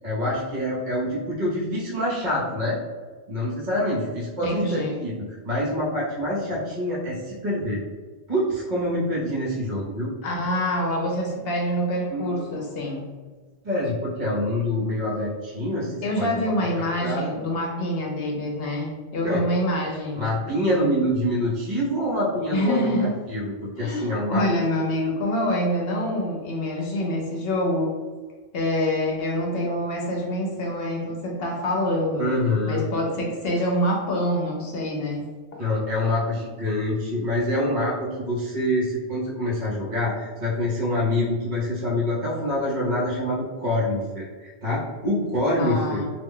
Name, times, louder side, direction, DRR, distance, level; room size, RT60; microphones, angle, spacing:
voice 1, 0.0-2.8 3.3-7.8 8.3-10.1 12.1-12.7 13.6-16.3 16.7-17.3 19.2-19.4 20.2-24.6 32.2-32.8 35.6-46.0, left 1 dB, 50° right, -6 dB, 0.9 m, -26 dB
voice 2, 4.4-5.0 10.2-13.1 16.0-20.3 22.5-23.1 23.8-27.9 28.5-32.3 32.7-35.2 45.6-46.1, left 1 dB, 65° left, -1 dB, 0.8 m, -26 dB
2.4 x 2.2 x 3.6 m, 1.4 s
omnidirectional pair, 1.1 m